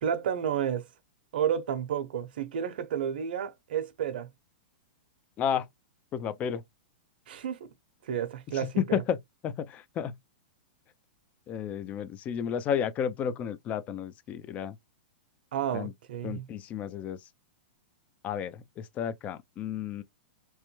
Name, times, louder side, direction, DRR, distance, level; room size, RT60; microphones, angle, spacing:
voice 1, 0.0-0.8 1.3-4.3 7.3-7.7 8.1-9.0 15.5-16.5, right 9 dB, 70° right, 0.8 m, -31 dB
voice 2, 6.1-6.6 8.8-9.2 9.4-10.1 11.5-14.7 15.7-15.9 16.2-17.2 18.2-20.0, left 8 dB, 25° left, 0.4 m, -32 dB
3.1 x 2.1 x 3.1 m
hypercardioid pair, 140°, 5 cm